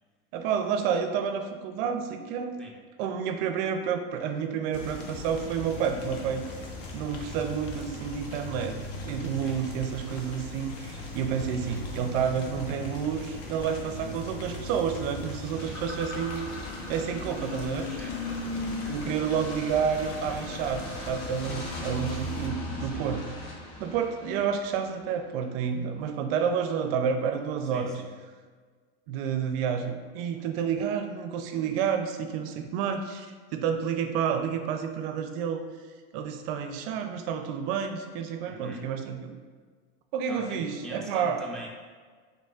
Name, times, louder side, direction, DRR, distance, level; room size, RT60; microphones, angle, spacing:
voice 1, 0.3-2.5 3.0-6.4 6.9-8.8 9.1-16.5 16.9-17.9 18.8-23.3 23.8-28.0 29.1-35.6 36.1-39.4 40.1-41.4, right 7 dB, 60° right, 7 dB, 0.5 m, -30 dB
sound 1, 4.7-22.5, left 2 dB, 45° left, 0.8 m, -40 dB
voice 2, 13.8-14.1 17.8-19.0 22.9-23.0 27.7-28.1 38.5-38.9 40.3-41.7, equal, ahead, -4 dB, 0.6 m, -44 dB
sound 2, 15.5-25.0, left 2 dB, 80° left, 1.4 m, -38 dB
5.2 x 3.9 x 2.3 m, 1.5 s
supercardioid pair, 130°, 32 cm